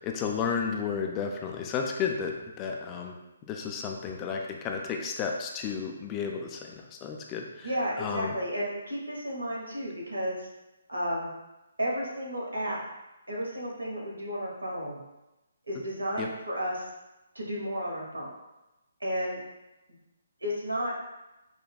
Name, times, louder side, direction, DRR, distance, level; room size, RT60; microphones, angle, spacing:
voice 1, 0.0-3.1 3.5-7.7 8.0-8.3 16.2-16.3, left 6 dB, 20° left, 2 dB, 0.3 m, -32 dB
voice 2, 7.6-10.5 10.9-11.3 11.8-12.8 13.3-15.0 15.7-16.8 17.3-18.3 19.0-19.4 20.4-20.9, equal, 85° right, -3 dB, 1.1 m, -32 dB
5.1 x 2.1 x 2.3 m, 0.98 s
figure-of-eight pair, 140°, 0 cm